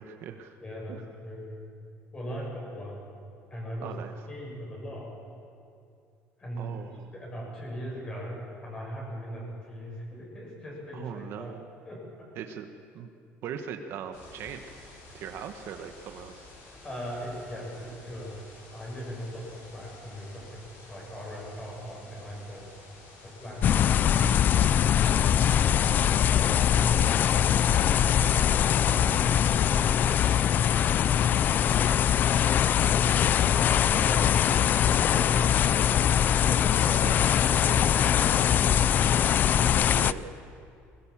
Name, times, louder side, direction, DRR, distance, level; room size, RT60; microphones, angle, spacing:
voice 1, 0.0-0.6 0.9-1.0 3.8-4.2 6.6-7.1 10.9-11.7 12.3-12.7 12.9-13.1 13.4-14.8 15.1-16.5 25.6-26.2 35.3-36.1 37.0-37.2 39.9-40.4, right 8 dB, 55° right, 6 dB, 1.3 m, -40 dB
voice 2, 0.6-1.6 2.1-3.1 3.5-3.9 4.3-5.1 6.4-6.7 7.1-8.4 8.6-11.5 11.8-12.3 16.8-18.3 18.7-20.6 20.9-22.7 23.2-25.3 26.3-27.1 28.2-30.5 30.8-31.2 32.7-33.0 33.3-37.0 37.4-39.0, equal, 20° left, -3 dB, 7.6 m, -39 dB
sound 1, 14.1-31.4, left 2 dB, 80° left, 7.0 m, -51 dB
sound 2, 23.6-40.1, left 9 dB, 40° left, 0.4 m, -22 dB
21.5 x 20.0 x 7.4 m, 2.5 s
cardioid pair, 150°, 5 cm